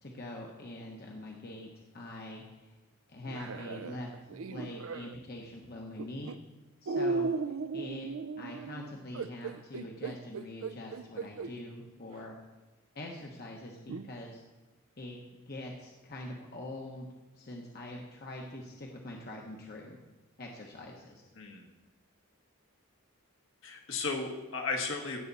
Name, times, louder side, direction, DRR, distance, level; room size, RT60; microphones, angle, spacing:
voice 1, 0.0-2.8 3.1-6.3 6.8-8.1 8.4-12.4 12.9-14.4 15.0-17.1 17.3-20.0 20.4-21.2, left 1 dB, 45° left, 0 dB, 1.1 m, -44 dB
sound 1, 3.3-5.2 6.0-6.3 6.9-11.5 12.2-12.3 13.9-14.1, right 4 dB, 75° right, 0.5 m, -36 dB
voice 2, 21.3-21.7 23.6-25.2, left 4 dB, 70° left, 1 dB, 1.7 m, -35 dB
17.0 x 7.2 x 4.1 m, 1.1 s
head